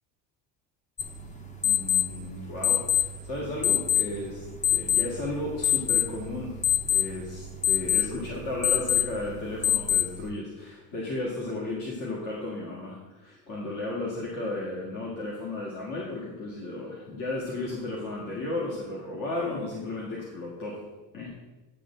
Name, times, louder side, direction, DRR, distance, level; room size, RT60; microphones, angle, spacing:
sound 1, 1.0-10.3, left 10 dB, 20° left, 0.8 m, -27 dB
voice 1, 1.6-6.6 6.9-20.8 21.1-21.3, left 2 dB, 55° left, -5 dB, 2.3 m, -34 dB
11.0 x 3.8 x 7.6 m, 1.1 s
cardioid pair, 155°, 37 cm